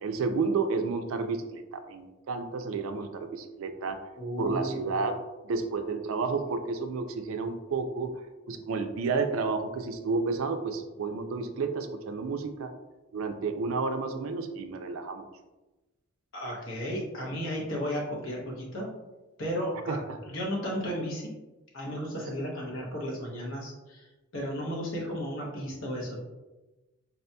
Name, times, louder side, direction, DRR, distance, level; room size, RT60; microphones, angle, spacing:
voice 1, 0.0-4.0 4.4-5.2 5.4-8.1 8.5-12.7 13.1-15.2 19.9-20.2, right 4 dB, 75° right, 7 dB, 0.4 m, -31 dB
voice 2, 4.2-5.0 16.3-18.9 19.4-21.3 21.7-26.2, equal, 65° left, -2 dB, 0.9 m, -34 dB
4.1 x 2.7 x 2.2 m, 1.1 s
head